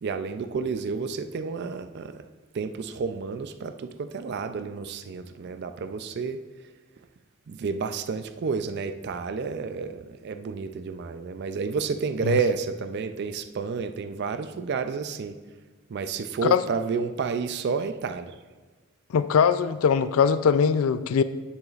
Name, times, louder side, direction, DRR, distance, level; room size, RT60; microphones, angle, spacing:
voice 1, 0.0-2.1 2.5-6.4 7.5-15.4 15.9-18.4, right 5 dB, 55° right, 9 dB, 0.4 m, -30 dB
voice 2, 19.1-21.2, left 6 dB, 85° left, 13 dB, 0.4 m, -21 dB
9.8 x 8.0 x 2.4 m, 1.3 s
head